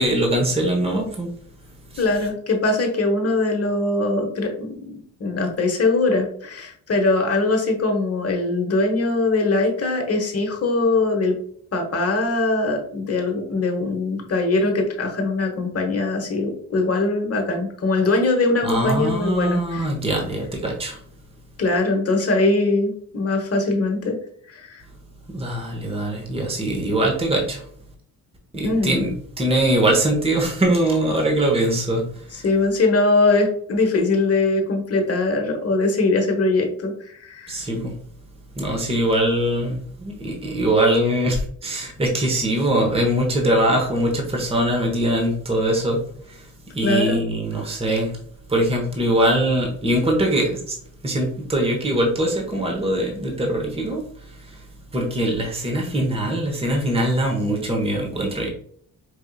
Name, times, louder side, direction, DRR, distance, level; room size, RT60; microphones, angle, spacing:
voice 1, 0.0-1.3 1.9-2.0 18.6-21.0 25.3-27.6 28.5-32.4 37.5-38.0 38.5-46.5 46.7-48.1 48.5-50.8 51.0-54.6 54.9-58.5, right 1 dB, 15° right, 0 dB, 1.0 m, -22 dB
voice 2, 2.0-4.9 5.2-11.4 11.7-19.9 21.6-24.2 24.5-24.8 28.6-29.0 32.3-37.5 46.8-47.2, left 2 dB, 40° left, 3 dB, 1.1 m, -21 dB
4.9 x 2.7 x 2.3 m, 0.62 s
cardioid pair, 85°, 36 cm